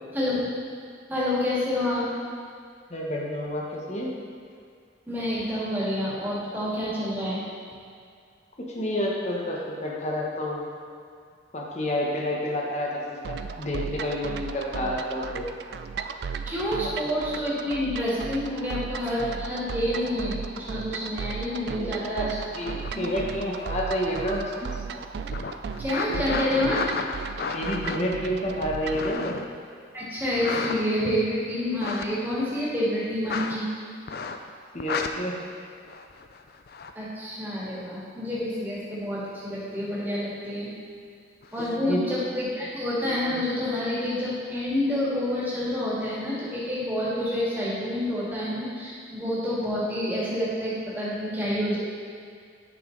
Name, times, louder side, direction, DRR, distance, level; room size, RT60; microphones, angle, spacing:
voice 1, 0.1-0.5 1.1-2.1 5.1-7.4 16.5-22.3 22.9-23.1 25.8-26.8 29.9-33.7 36.9-40.7 41.5-51.8, left 1 dB, 10° right, -8 dB, 2.0 m, -28 dB
voice 2, 2.9-4.1 8.6-10.7 11.5-15.4 17.0-17.3 21.7-22.3 22.6-24.7 26.3-26.4 27.5-29.4 34.7-35.4 41.6-42.2 43.0-43.2, equal, 35° left, -3 dB, 1.1 m, -29 dB
sound 1, 13.2-29.1, right 5 dB, 60° right, 0.3 m, -36 dB
sound 2, 22.4-24.9 25.3-29.6 30.3-31.2 31.7-32.1 33.3-33.6 34.1-34.5 34.8-35.1 35.9-36.9 41.4-41.8, left 4 dB, 55° left, 0.4 m, -34 dB
9.5 x 5.6 x 3.9 m, 2.2 s
head